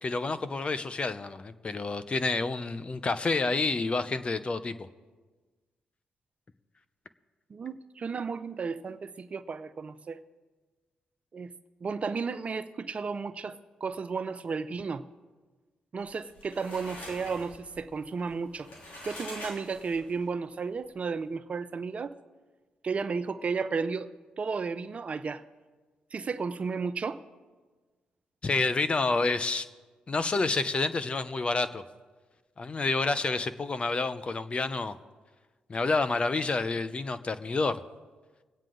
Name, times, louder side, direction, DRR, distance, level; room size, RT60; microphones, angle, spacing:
voice 1, 0.0-4.9 28.4-29.7 30.1-31.8 32.6-35.0 35.7-37.8, left 3 dB, 40° left, 12 dB, 0.8 m, -29 dB
voice 2, 7.5-10.2 11.3-11.5 11.8-15.0 15.9-18.7 19.0-22.2 22.8-24.1 24.4-25.4 26.1-27.2, right 5 dB, 50° right, 12 dB, 0.7 m, -33 dB
sound 1, 16.1-20.3, left 1 dB, 70° left, 3.3 m, -45 dB
22.5 x 8.9 x 3.9 m, 1.3 s
supercardioid pair, 60°, 3 cm